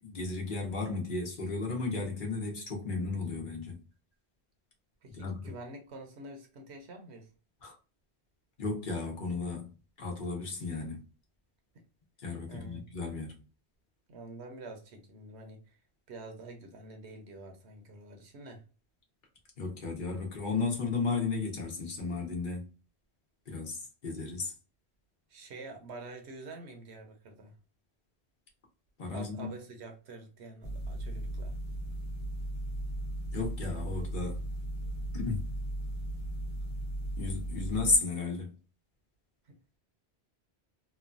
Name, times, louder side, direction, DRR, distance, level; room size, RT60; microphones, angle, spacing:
voice 1, 0.0-3.8 5.1-5.5 7.6-7.7 8.6-11.0 12.2-13.3 19.6-22.7 23.5-24.5 29.0-29.5 33.3-34.5 35.1-35.5 37.2-38.6, left 3 dB, 50° left, 0.9 m, -34 dB
voice 2, 5.0-7.3 11.7-11.9 12.5-12.8 14.1-15.8 16.1-18.6 25.3-27.5 29.1-31.5 39.4-39.8, right 2 dB, 75° right, 1.0 m, -47 dB
sound 1, 30.6-38.0, right 1 dB, 25° left, 1.1 m, -36 dB
3.0 x 2.2 x 2.5 m
omnidirectional pair, 1.1 m